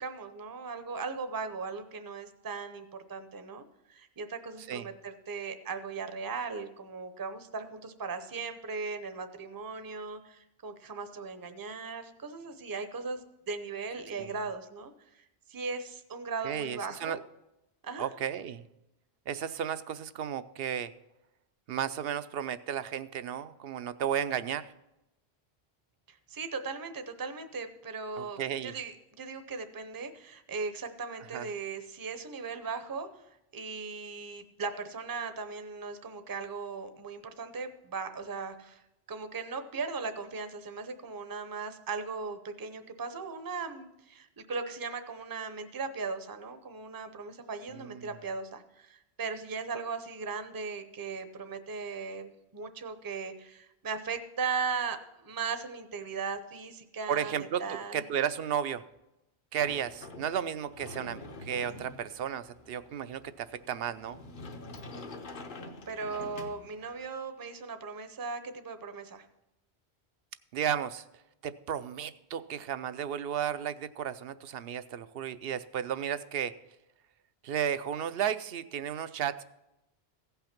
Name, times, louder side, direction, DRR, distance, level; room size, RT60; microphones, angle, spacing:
voice 1, 0.0-17.2 17.8-18.1 26.1-33.2 33.5-38.8 39.1-58.0 65.9-69.3, right 4 dB, 25° right, 9 dB, 0.6 m, -38 dB
voice 2, 16.4-17.2 18.0-18.6 19.3-20.9 21.7-24.7 28.2-28.8 31.3-31.5 47.7-48.1 57.1-58.8 59.5-64.2 70.5-71.0 71.4-76.5 77.4-79.4, right 9 dB, 70° right, 13 dB, 0.7 m, -33 dB
Sliding door, 59.6-67.1, left 2 dB, 55° left, 1.0 m, -46 dB
15.5 x 5.7 x 5.9 m, 0.91 s
omnidirectional pair, 1.1 m